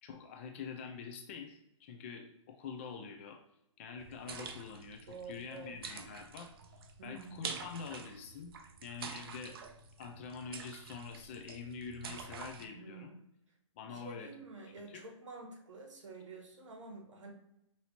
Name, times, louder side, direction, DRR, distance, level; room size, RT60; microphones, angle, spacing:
voice 1, 0.0-3.4 3.8-6.5 7.0-8.5 8.8-9.6 10.0-13.1 13.8-14.3 14.8-15.0, left 5 dB, 25° left, 4 dB, 0.4 m, -46 dB
sound 1, 4.0-12.7, right 5 dB, 50° right, 0.5 m, -47 dB
voice 2, 5.1-5.8 7.0-7.5 12.6-13.2 13.9-17.3, right 3 dB, 70° right, 1 dB, 1.3 m, -49 dB
5.9 x 2.7 x 2.8 m, 0.83 s
hypercardioid pair, 150°, 16 cm